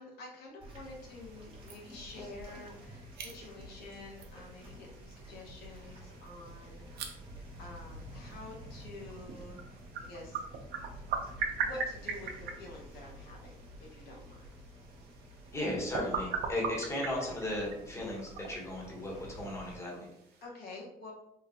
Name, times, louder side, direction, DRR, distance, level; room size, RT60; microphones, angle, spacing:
voice 1, 0.0-7.3 7.6-10.4 11.6-14.5 20.4-21.1, left 2 dB, 70° left, -1 dB, 1.0 m, -48 dB
sound 1, 0.6-19.8, equal, 35° right, 1.1 m, -50 dB
Bats in East Finchley London, 0.8-20.4, right 5 dB, 75° right, 0.6 m, -42 dB
voice 2, 15.5-20.1, left 1 dB, 15° left, -3 dB, 1.2 m, -36 dB
3.6 x 2.3 x 2.8 m, 0.78 s
cardioid pair, 110°, 17 cm